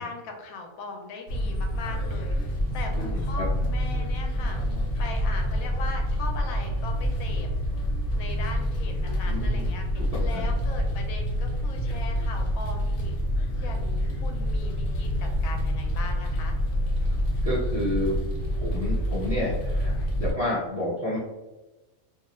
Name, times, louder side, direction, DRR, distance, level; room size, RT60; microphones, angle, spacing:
voice 1, 0.0-2.4 2.7-4.6 5.0-7.5 8.2-13.2 13.6-16.6, left 3 dB, 85° left, 3 dB, 1.0 m, -39 dB
sound 1, 1.3-20.3, equal, 65° left, 0.9 m, -27 dB
voice 2, 9.3-9.7 9.9-10.4 17.4-18.2 18.5-21.2, equal, 40° right, -8 dB, 0.5 m, -30 dB
2.4 x 2.4 x 2.9 m, 1.1 s
omnidirectional pair, 1.5 m